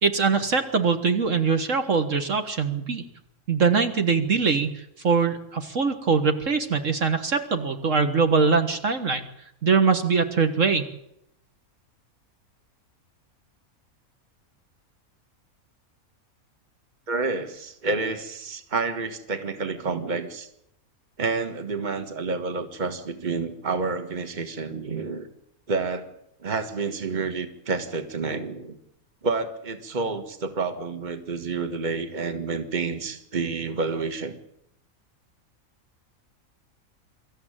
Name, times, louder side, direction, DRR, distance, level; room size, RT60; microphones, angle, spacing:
voice 1, 0.0-3.0 3.5-4.7 5.0-9.2 9.6-10.8, right 5 dB, 60° right, 7 dB, 1.9 m, -22 dB
voice 2, 17.1-20.5 21.2-25.3 25.7-26.1 26.4-28.8 29.2-34.4, right 4 dB, 30° right, 8 dB, 1.7 m, -29 dB
24.5 x 14.0 x 9.0 m, 0.79 s
omnidirectional pair, 1.5 m